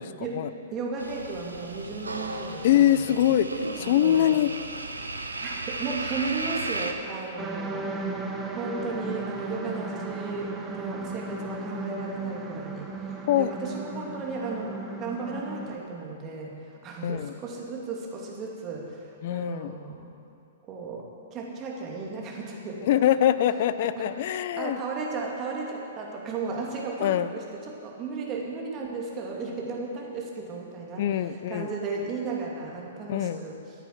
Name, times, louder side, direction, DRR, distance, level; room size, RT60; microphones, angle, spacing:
voice 1, 0.2-3.3 3.8-4.4 5.4-7.9 8.5-20.1 20.7-23.1 23.8-33.6, right 4 dB, 30° right, -2 dB, 2.5 m, -35 dB
sound 1, 1.0-6.9, right 2 dB, 85° right, 0.9 m, -35 dB
voice 2, 2.6-4.5 13.3-13.5 17.0-17.3 19.2-19.7 22.8-24.8 27.0-27.3 31.0-31.7 33.1-33.4, left 11 dB, 50° left, 14 dB, 0.5 m, -23 dB
sound 2, 7.4-15.8, right 3 dB, 15° right, 1.1 m, -35 dB
14.0 x 8.9 x 6.0 m, 2.6 s
figure-of-eight pair, 110°, 0 cm